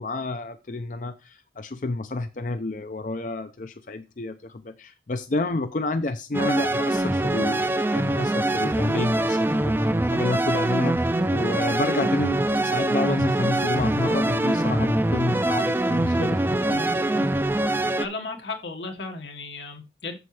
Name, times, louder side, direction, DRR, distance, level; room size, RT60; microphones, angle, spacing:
voice 1, 0.0-16.8, left 2 dB, 45° left, 0.5 m, -30 dB
sound 1, 6.3-18.1, right 1 dB, 10° right, 0.4 m, -23 dB
voice 2, 16.7-17.3 17.7-20.2, left 3 dB, 85° left, 1.7 m, -35 dB
7.8 x 7.2 x 3.3 m
head